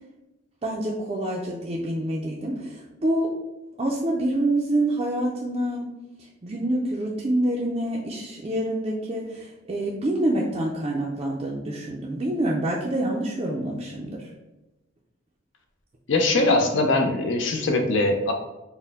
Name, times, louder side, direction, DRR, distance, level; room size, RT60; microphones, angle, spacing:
voice 1, 0.6-3.3 3.8-5.9 6.4-14.3, right 1 dB, 30° right, -4 dB, 0.4 m, -26 dB
voice 2, 16.1-18.3, left 2 dB, 65° left, 4 dB, 0.6 m, -21 dB
4.4 x 2.1 x 3.4 m, 1.0 s
head